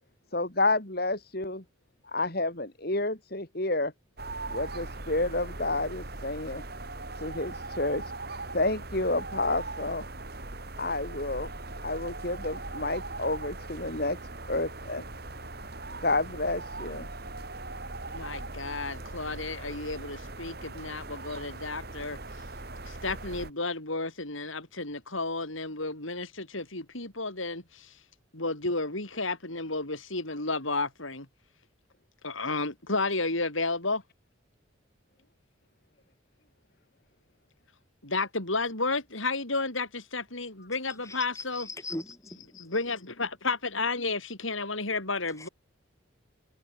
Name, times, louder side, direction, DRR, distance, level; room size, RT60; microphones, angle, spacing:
voice 1, 0.3-1.6 2.1-3.9 4.5-6.6 7.2-8.1 8.5-10.0 10.8-11.5 11.8-14.2 14.5-15.0 16.0-17.1, left 2 dB, 50° left, 3.8 m, -30 dB
sound 1, 4.2-23.5, right 2 dB, 50° right, 2.8 m, -40 dB
voice 2, 18.1-22.2 22.8-27.9 28.3-31.3 32.2-34.0 38.0-41.7 42.5-45.5, left 3 dB, 80° left, 7.4 m, -32 dB
voice 3, 41.0-42.4 45.4-45.5, left 2 dB, 15° left, 7.7 m, -39 dB
head